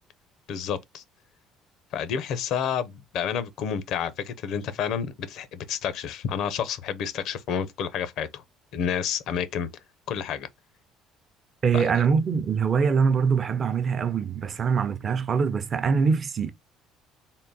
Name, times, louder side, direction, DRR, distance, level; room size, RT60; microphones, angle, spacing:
voice 1, 0.5-1.0 1.9-8.4 8.7-9.7 10.1-10.5 11.7-11.9, left 8 dB, 70° left, 0.6 m, -29 dB
voice 2, 11.6-16.5, right 6 dB, 40° right, 0.5 m, -23 dB
3.7 x 2.2 x 3.8 m
cardioid pair, 100°, 0 cm